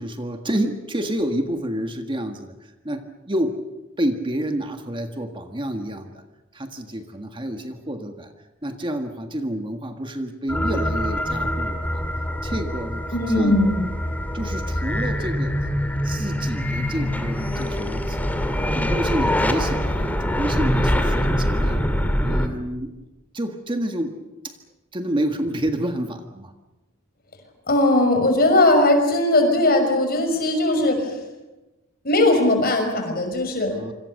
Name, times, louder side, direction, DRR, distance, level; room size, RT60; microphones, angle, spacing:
voice 1, 0.0-3.6 4.0-6.2 6.5-8.3 8.6-12.0 12.4-13.6 14.3-15.6 16.0-18.2 18.7-23.0 23.3-24.6 24.9-26.5 33.7-33.9, right 1 dB, 25° right, 5 dB, 1.7 m, -29 dB
sound 1, 10.5-22.5, equal, 10° left, 2.4 m, -24 dB
voice 2, 13.1-13.8 27.7-31.2 32.0-33.7, left 1 dB, 45° left, 5 dB, 6.0 m, -19 dB
27.5 x 25.5 x 6.7 m, 1.1 s
head